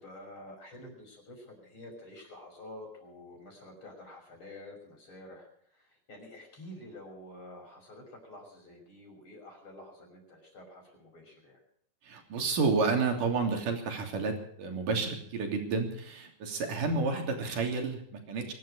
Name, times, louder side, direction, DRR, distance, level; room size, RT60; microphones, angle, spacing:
voice 1, 0.0-11.6, left 1 dB, 35° left, 2 dB, 6.5 m, -49 dB
voice 2, 12.0-18.5, right 4 dB, 65° right, 3 dB, 4.6 m, -30 dB
23.5 x 12.0 x 5.1 m, 0.67 s
omnidirectional pair, 4.1 m